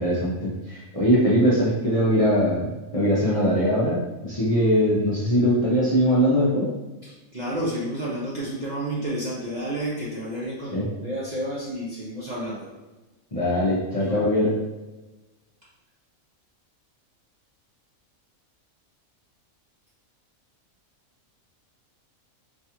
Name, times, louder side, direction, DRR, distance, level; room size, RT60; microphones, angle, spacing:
voice 1, 0.0-6.7 10.7-10.9 13.3-14.5, equal, 40° left, -8 dB, 0.5 m, -21 dB
voice 2, 7.0-12.7 14.0-14.3, right 1 dB, 45° right, -7 dB, 0.6 m, -31 dB
4.2 x 2.3 x 2.9 m, 1.1 s
omnidirectional pair, 1.5 m